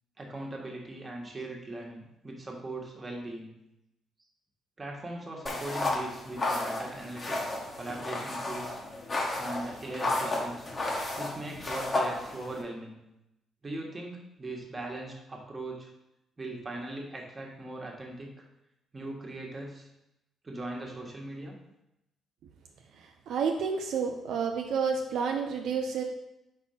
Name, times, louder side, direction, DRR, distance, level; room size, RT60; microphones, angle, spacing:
voice 1, 0.2-3.5 4.8-8.8 9.3-10.7 11.2-13.0 13.6-15.9 16.4-18.4 18.9-19.9 20.4-21.6, right 2 dB, 25° right, -1 dB, 1.5 m, -40 dB
sound 1, 5.5-12.6, left 2 dB, 35° left, 1.2 m, -33 dB
voice 2, 23.0-26.0, right 5 dB, 75° right, 3 dB, 0.5 m, -30 dB
4.3 x 4.3 x 5.7 m, 0.88 s
cardioid pair, 90°, 0 cm